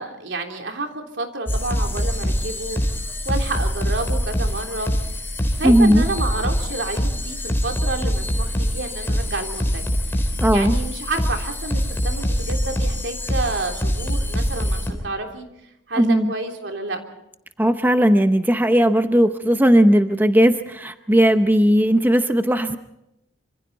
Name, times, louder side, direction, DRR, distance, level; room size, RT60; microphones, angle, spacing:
voice 1, 0.0-2.8 3.2-4.9 5.6-9.8 10.1-15.4 15.9-17.0, right 2 dB, 75° right, 3 dB, 3.4 m, -29 dB
sound 1, 1.5-14.9, equal, 15° left, 3.5 m, -24 dB
voice 2, 5.6-6.0 10.4-10.7 16.0-16.3 17.6-22.8, equal, 10° right, 8 dB, 0.8 m, -17 dB
26.0 x 26.0 x 4.1 m, 0.82 s
head